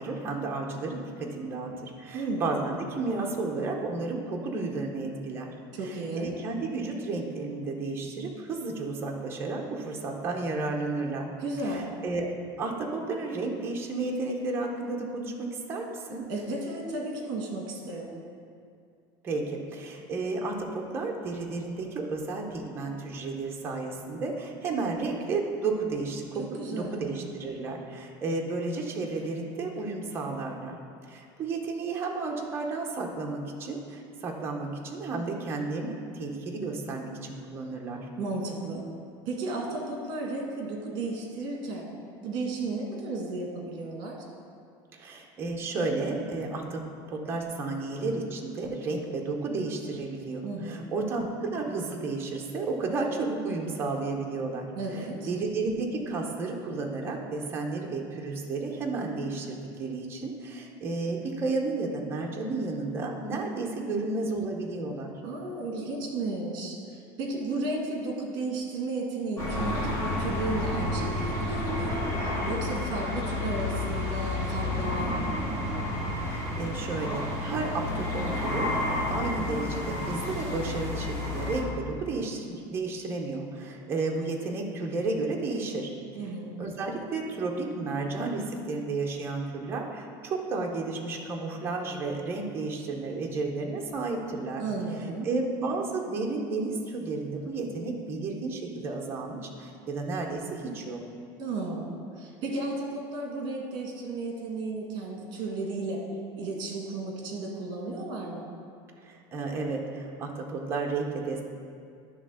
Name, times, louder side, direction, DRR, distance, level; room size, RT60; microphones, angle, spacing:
voice 1, 0.0-5.5 5.8-11.3 11.7-12.3 12.6-16.3 19.2-30.8 31.1-38.1 44.9-46.8 47.1-65.1 76.1-85.9 86.2-86.3 86.6-94.6 95.2-101.0 109.0-111.4, right 3 dB, 20° right, 0 dB, 0.7 m, -32 dB
voice 2, 2.1-2.5 5.8-6.3 11.4-11.9 16.3-18.1 26.4-27.2 38.2-38.9 39.2-41.9 42.2-44.1 50.4-50.8 54.7-55.3 65.2-75.3 86.1-86.5 94.6-95.3 101.4-106.0 106.4-108.5, right 2 dB, 40° right, 0 dB, 1.6 m, -34 dB
sound 1, 69.4-81.6, left 2 dB, 25° left, 1.4 m, -30 dB
9.9 x 3.4 x 6.3 m, 2.3 s
cardioid pair, 175°, 12 cm